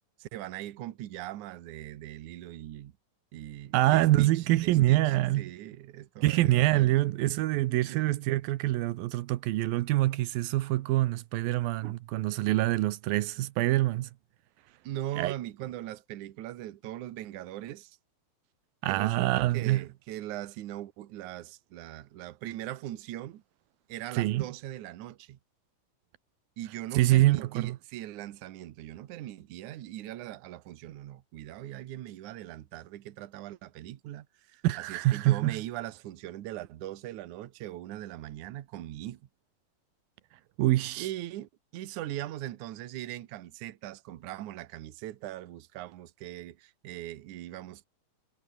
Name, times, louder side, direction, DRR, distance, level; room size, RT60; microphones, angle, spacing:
voice 1, 0.2-2.9 3.3-7.0 7.7-8.2 11.8-12.0 14.8-18.0 18.9-23.4 23.9-25.4 26.6-39.2 41.0-47.9, right 14 dB, 65° right, 2.5 m, -40 dB
voice 2, 3.7-5.5 6.2-14.1 15.2-15.3 18.8-19.8 24.1-24.5 26.9-27.8 34.6-35.6 40.6-41.1, right 16 dB, 85° right, 2.7 m, -25 dB
omnidirectional pair, 4.1 m